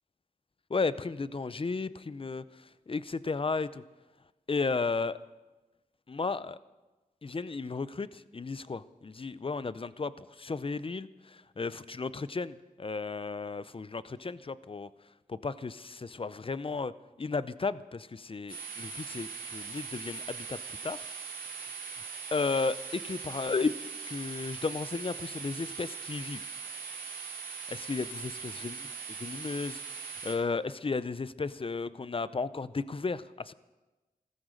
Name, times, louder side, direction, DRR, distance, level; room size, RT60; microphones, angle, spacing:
voice 1, 0.7-2.4 2.9-3.8 4.5-5.2 6.1-6.6 7.2-14.9 15.3-16.9 17.2-21.1 22.3-23.7 24.1-26.5 27.7-28.8 29.2-33.5, left 4 dB, 35° left, 16 dB, 0.6 m, -34 dB
sound 1, 18.5-30.3, right 5 dB, 75° left, 7.6 m, -41 dB
16.0 x 14.0 x 6.5 m, 1.2 s
wide cardioid pair, 65°, 15 cm